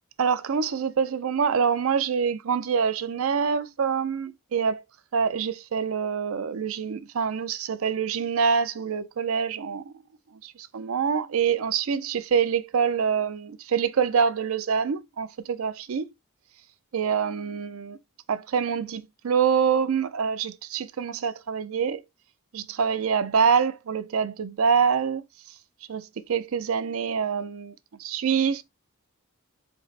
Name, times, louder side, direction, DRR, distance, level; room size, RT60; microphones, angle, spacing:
voice 1, 0.2-4.8 5.1-9.9 10.4-16.1 16.9-18.0 18.3-22.0 22.5-25.2 25.9-27.7 28.0-28.6, right 6 dB, 70° right, 0.5 m, -25 dB
4.4 x 2.1 x 4.0 m
head